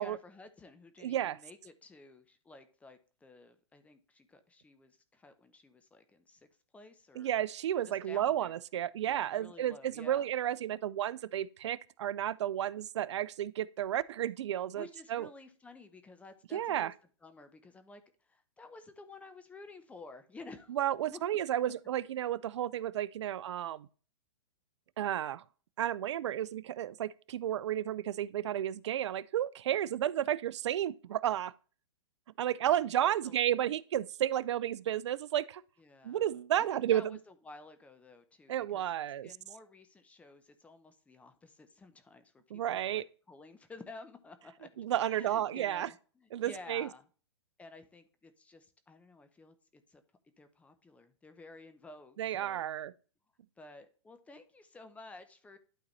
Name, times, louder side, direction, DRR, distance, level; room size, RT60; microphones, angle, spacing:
voice 1, 0.0-6.5 6.7-7.3 7.9-8.6 9.1-10.3 14.7-16.9 17.2-20.8 21.1-21.2 32.7-33.4 35.8-42.3 42.7-44.7 45.0-47.0 47.6-50.0 50.4-52.7 53.6-55.6, left 3 dB, 10° left, 0.7 m, -53 dB
voice 2, 1.0-1.4 7.2-15.3 16.5-16.9 20.7-23.9 25.0-25.4 25.8-31.5 32.4-35.6 36.0-37.0 38.5-39.3 42.5-43.1 44.8-45.9 46.3-46.9 52.2-52.9, right 11 dB, 70° right, 0.4 m, -32 dB
11.5 x 4.0 x 3.1 m
hypercardioid pair, 135°, 15 cm